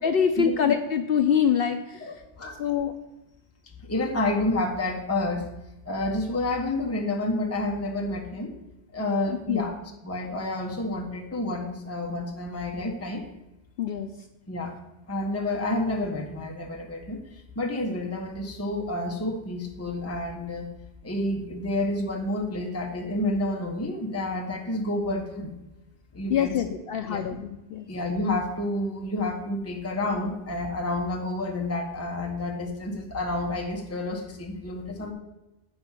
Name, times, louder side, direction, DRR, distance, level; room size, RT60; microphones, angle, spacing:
voice 1, 0.0-2.0 2.6-2.9 9.5-9.7 13.8-14.1 26.3-27.9, left 8 dB, 65° left, 7 dB, 0.7 m, -25 dB
voice 2, 2.0-2.6 3.8-5.4 5.8-8.5 8.9-13.2 14.5-14.7 15.1-20.7 21.0-25.5 26.1-26.7 27.1-27.4 27.9-35.1, left 2 dB, 15° left, 0 dB, 1.1 m, -29 dB
8.9 x 5.2 x 7.3 m, 1.0 s
omnidirectional pair, 1.1 m